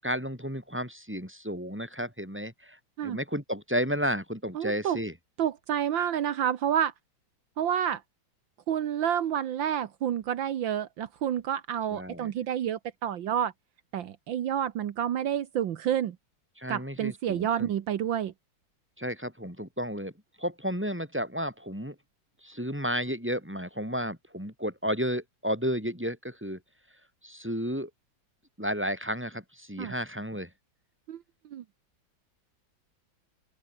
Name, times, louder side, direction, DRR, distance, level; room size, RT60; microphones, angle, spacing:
voice 1, 0.0-5.1 11.9-12.3 16.6-17.7 19.0-20.1 20.4-22.0 22.4-26.6 27.2-27.9 28.6-30.5, equal, 5° right, 7.7 m, -32 dB
voice 2, 4.6-5.0 5.4-6.9 7.6-8.0 8.7-13.5 13.9-16.2 16.7-18.3 29.8-29.9 31.1-31.2 31.5-31.6, right 9 dB, 75° right, 1.8 m, -29 dB
open air
omnidirectional pair, 2.1 m